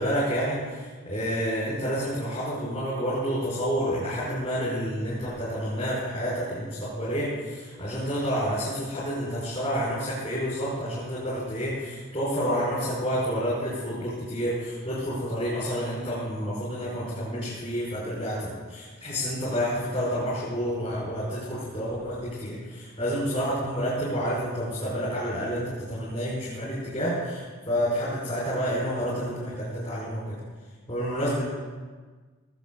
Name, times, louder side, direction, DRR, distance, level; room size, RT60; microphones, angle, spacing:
voice 1, 0.0-30.4 30.9-31.5, equal, 30° left, -9 dB, 5.7 m, -29 dB
20.0 x 8.1 x 8.0 m, 1.4 s
head